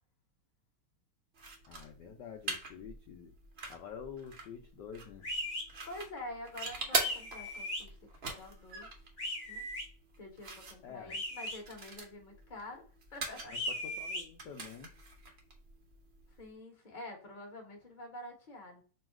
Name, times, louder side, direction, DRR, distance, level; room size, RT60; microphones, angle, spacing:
sound 1, 1.3-16.5, right 3 dB, 80° right, 0.5 m, -43 dB
voice 1, 1.7-3.3 3.7-5.3 10.8-11.2 13.5-14.9, left 7 dB, 70° left, 3 dB, 1.0 m, -48 dB
sound 2, 5.2-5.6 6.9-7.8 9.2-9.8 11.1-11.6 13.5-14.2, left 1 dB, 45° left, 0.6 m, -38 dB
voice 2, 5.9-8.9 9.5-9.6 10.2-13.5 16.4-18.8, left 2 dB, 30° left, 1 dB, 1.0 m, -47 dB
3.1 x 2.7 x 4.5 m, 0.39 s
omnidirectional pair, 2.4 m